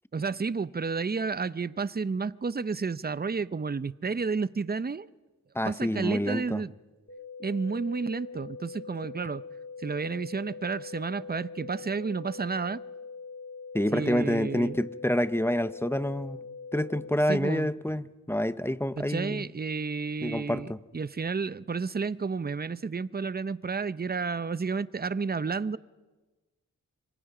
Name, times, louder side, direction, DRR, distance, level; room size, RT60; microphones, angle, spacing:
voice 1, 0.1-5.1 5.7-6.7 7.4-9.4 9.8-12.8 13.9-14.9 17.3-17.7 19.0-25.8, right 4 dB, 30° right, 0.7 m, -31 dB
voice 2, 5.5-6.6 13.7-16.4 16.7-19.5 20.2-20.8, left 1 dB, 5° left, 0.8 m, -28 dB
sound 1, 7.1-17.1, left 5 dB, 40° left, 2.5 m, -43 dB
26.0 x 23.5 x 5.0 m
cardioid pair, 55°, 32 cm